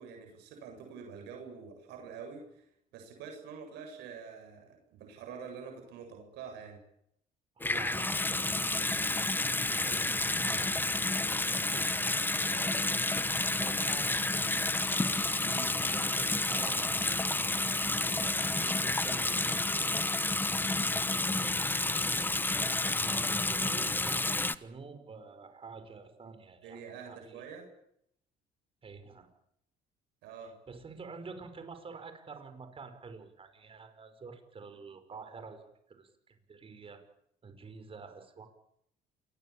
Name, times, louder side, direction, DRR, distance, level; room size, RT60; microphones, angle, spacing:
voice 1, 0.0-2.6 2.9-6.8 12.5-12.7 15.4-15.8 21.1-21.4 26.6-27.6 30.2-30.5, right 6 dB, 85° right, 3 dB, 8.0 m, -46 dB
Water tap faucet / Sink (filling or washing) / Bathtub (filling or washing), 7.6-24.5, left 2 dB, 10° left, 1.2 m, -30 dB
voice 2, 7.6-13.0 13.4-15.1 15.7-20.1 22.6-26.8 27.1-27.4 28.8-29.3 30.7-37.0 37.4-38.5, right 4 dB, 35° right, 8 dB, 5.4 m, -48 dB
28.0 x 20.5 x 8.8 m, 0.75 s
cardioid pair, 110°, 17 cm